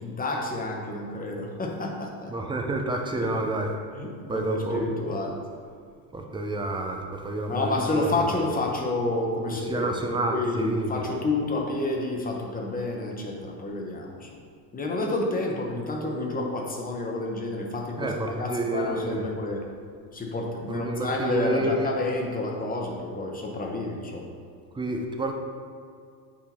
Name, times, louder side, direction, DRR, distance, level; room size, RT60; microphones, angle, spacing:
voice 1, 0.0-2.3 3.1-3.3 4.0-5.4 7.5-14.4 14.7-19.6 20.1-24.3, left 2 dB, 15° left, 0 dB, 0.9 m, -29 dB
voice 2, 2.3-3.8 4.3-4.8 6.1-8.1 9.5-11.0 18.0-19.3 20.7-21.9 24.7-25.3, right 1 dB, 10° right, 2 dB, 0.4 m, -29 dB
8.3 x 2.8 x 4.2 m, 2.3 s
supercardioid pair, 95°, 49 cm